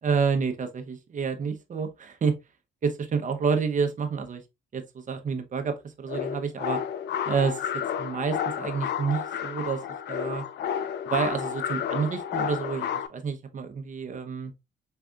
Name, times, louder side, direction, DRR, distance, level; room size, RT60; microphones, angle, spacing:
voice 1, 0.0-2.3 2.8-4.4 4.7-6.8 7.3-7.7 8.0-9.8 10.1-10.4 11.0-14.5, right 5 dB, 40° right, 0.8 m, -29 dB
sound 1, 6.1-13.1, left 8 dB, 60° left, 0.4 m, -31 dB
3.6 x 3.3 x 2.3 m
cardioid pair, 90°, 20 cm